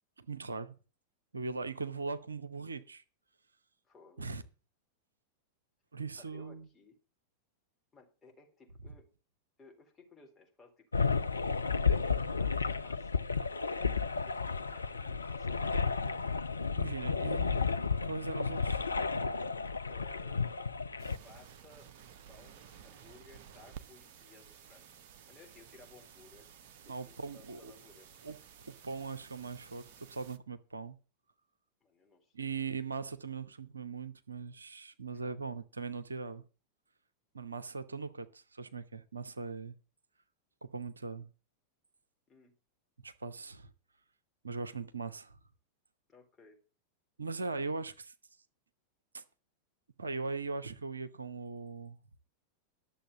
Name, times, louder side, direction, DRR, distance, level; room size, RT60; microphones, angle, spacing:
voice 1, 0.2-0.7 1.3-3.0 4.2-4.4 5.9-6.7 16.8-17.7 18.0-18.9 26.9-27.7 28.2-28.3 28.7-31.0 32.3-36.4 37.3-39.8 40.6-41.3 43.0-43.7 44.4-45.4 47.2-48.1 49.1-49.2 50.0-52.0, right 4 dB, 75° right, 0.8 m, -40 dB
voice 2, 3.9-4.3 6.2-6.9 7.9-9.1 9.6-10.9 11.5-13.2 14.3-14.5 14.7-16.3 19.9-20.5 21.2-21.9 22.3-24.9 25.3-26.5 26.9-28.2 31.8-32.6 35.1-35.4 42.3-42.5 46.1-46.6, left 3 dB, 15° left, 3.8 m, -59 dB
sound 1, 10.9-21.2, left 5 dB, 80° left, 0.5 m, -32 dB
sound 2, 21.0-30.4, right 8 dB, 50° right, 0.9 m, -54 dB
11.5 x 7.0 x 6.9 m
figure-of-eight pair, 90°, 0 cm